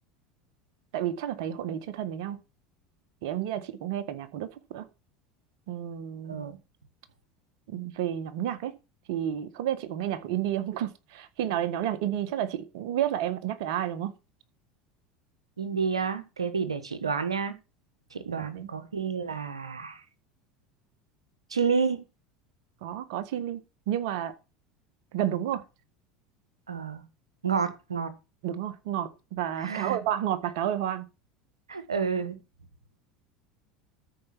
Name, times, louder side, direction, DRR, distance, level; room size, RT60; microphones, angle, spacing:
voice 1, 0.9-2.4 3.2-4.9 5.7-6.4 7.7-8.7 9.1-14.1 18.4-18.7 22.8-23.6 23.9-24.3 25.1-25.6 28.4-31.0, right 11 dB, 65° right, 1.6 m, -31 dB
voice 2, 6.3-6.6 15.6-17.6 18.1-20.0 21.5-22.0 26.7-27.0 27.4-28.1 29.6-30.0 31.7-32.4, right 5 dB, 90° right, 1.3 m, -30 dB
13.0 x 5.2 x 6.1 m
hypercardioid pair, 80°, 3 cm